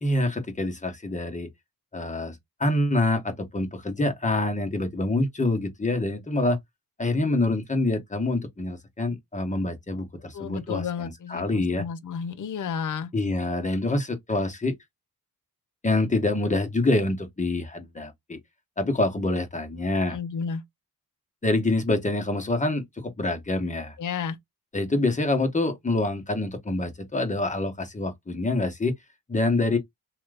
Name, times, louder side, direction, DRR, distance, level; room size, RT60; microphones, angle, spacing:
voice 1, 0.0-1.5 1.9-6.6 7.0-11.8 13.1-14.8 15.8-18.4 18.8-20.2 21.4-23.9 24.7-28.9 29.3-29.8, left 2 dB, 20° left, 1.0 m, -26 dB
voice 2, 10.3-13.1 20.1-20.6 24.0-24.4, left 6 dB, 55° left, 0.6 m, -32 dB
2.9 x 2.4 x 3.3 m
cardioid pair, 85°, 36 cm